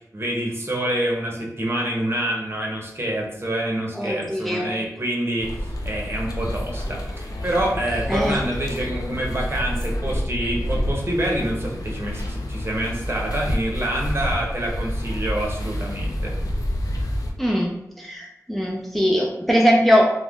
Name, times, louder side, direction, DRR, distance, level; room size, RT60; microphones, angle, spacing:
voice 1, 0.1-16.3, right 1 dB, 40° right, -2 dB, 0.7 m, -27 dB
voice 2, 3.9-4.7 8.1-8.4 17.4-20.1, equal, ahead, -1 dB, 0.4 m, -21 dB
sound 1, 5.4-17.3, equal, 75° left, 0.4 m, -28 dB
2.4 x 2.1 x 3.4 m, 0.83 s
wide cardioid pair, 55°, 6 cm